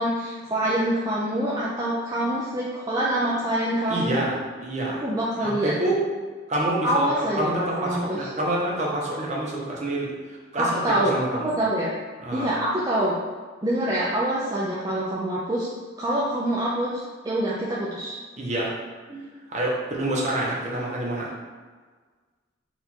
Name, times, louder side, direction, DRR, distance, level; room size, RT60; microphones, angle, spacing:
voice 1, 0.0-4.2 5.0-5.7 6.8-8.2 10.6-11.1 11.4-11.9 12.3-13.1 13.6-15.7 16.0-17.0 17.2-18.2 19.1-19.2, right 1 dB, 20° right, -7 dB, 0.4 m, -25 dB
voice 2, 3.9-4.4 4.6-5.0 5.4-6.0 6.5-11.5 12.2-12.5 18.4-18.7 19.5-21.3, right 1 dB, 40° right, -4 dB, 0.9 m, -27 dB
4.4 x 2.5 x 4.3 m, 1.4 s
head